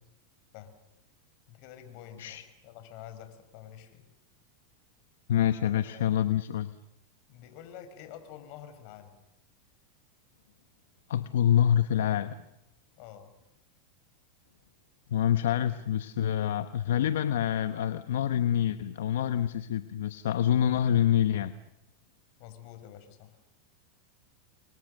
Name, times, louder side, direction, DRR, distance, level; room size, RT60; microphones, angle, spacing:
voice 1, 1.5-4.1 5.8-6.1 7.3-9.1 13.0-13.3 22.4-23.4, left 10 dB, 55° left, 9 dB, 5.4 m, -48 dB
voice 2, 5.3-6.7 11.1-12.3 15.1-21.5, left 10 dB, 80° left, 11 dB, 1.1 m, -26 dB
30.0 x 24.5 x 6.6 m, 0.87 s
hypercardioid pair, 110°, 0 cm